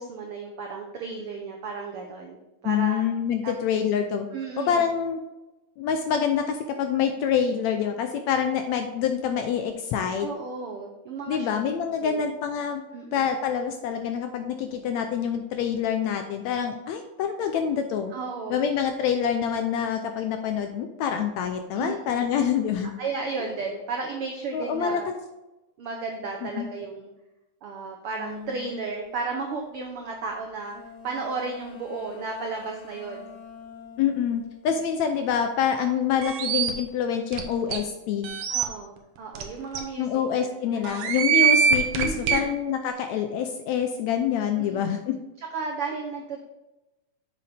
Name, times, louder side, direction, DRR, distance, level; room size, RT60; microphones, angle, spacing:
voice 1, 0.0-2.4 2.6-3.0 3.4-3.5 4.3-4.8 10.2-11.5 12.0-12.3 12.9-13.3 18.1-18.6 21.8-22.3 23.0-25.1 25.8-27.1 27.6-30.7 31.0-33.3 38.5-40.0 40.4-40.8 42.0-42.5 44.6-44.9 45.5-46.4, right 4 dB, 80° right, 1 dB, 1.2 m, -34 dB
voice 2, 2.6-4.3 4.6-5.2 5.8-10.3 11.3-12.8 13.1-18.1 18.5-22.9 24.5-25.0 26.4-26.7 34.0-38.3 40.0-45.1, left 8 dB, 80° left, 6 dB, 1.7 m, -26 dB
sound 1, 28.1-28.8 30.7-35.4 35.6-36.5, left 6 dB, 55° left, 3.2 m, -45 dB
sound 2, 36.2-36.7 37.3-37.4 37.7-37.8 38.2-38.6 39.4-39.5 39.8-39.9 40.8-42.4, right 7 dB, 65° right, 1.7 m, -22 dB
7.6 x 7.0 x 3.4 m, 1.0 s
omnidirectional pair, 3.6 m